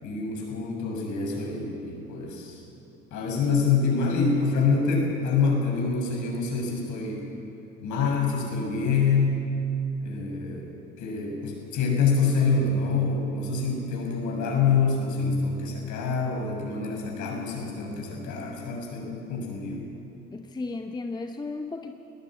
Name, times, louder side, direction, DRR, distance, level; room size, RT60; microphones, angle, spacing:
voice 1, 0.0-2.6 3.1-7.2 7.8-9.4 10.0-10.7 11.0-19.9, left 4 dB, 45° left, 0 dB, 6.9 m, -26 dB
voice 2, 20.3-21.9, left 3 dB, 10° left, 6 dB, 0.9 m, -34 dB
20.0 x 20.0 x 8.7 m, 2.7 s
figure-of-eight pair, 65°, 42 cm